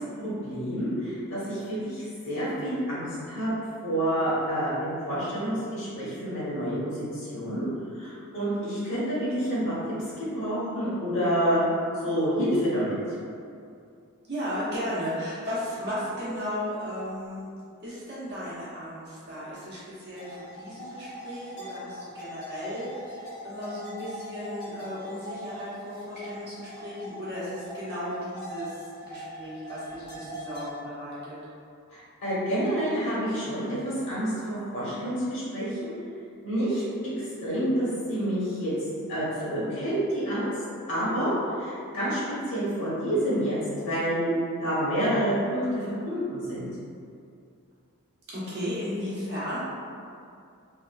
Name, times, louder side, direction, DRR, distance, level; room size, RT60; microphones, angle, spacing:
voice 1, 0.0-3.5 3.8-7.6 8.0-9.7 10.2-11.6 12.0-12.9 31.9-35.9 36.4-36.8 37.2-38.7 39.1-40.5 40.9-41.3 41.6-44.3 44.6-46.7, equal, 60° left, -10 dB, 1.1 m, -28 dB
voice 2, 14.3-17.5 17.8-31.3 48.3-49.6, equal, 50° right, -10 dB, 0.9 m, -35 dB
sound 1, 20.1-30.7, equal, 90° left, 1.2 m, -41 dB
3.0 x 2.4 x 2.3 m, 2.4 s
head